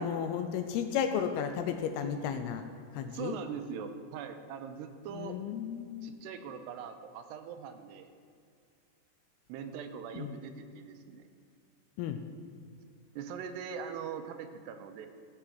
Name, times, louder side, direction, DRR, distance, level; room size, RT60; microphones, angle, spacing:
voice 1, 0.0-2.6 2.9-3.4 5.1-6.2 10.2-10.3 12.0-12.2, left 8 dB, 80° left, 8 dB, 2.4 m, -33 dB
voice 2, 2.7-5.4 6.0-8.1 9.5-11.2 13.2-15.1, right 7 dB, 85° right, 8 dB, 2.8 m, -42 dB
14.5 x 6.0 x 7.7 m, 2.4 s
omnidirectional pair, 4.9 m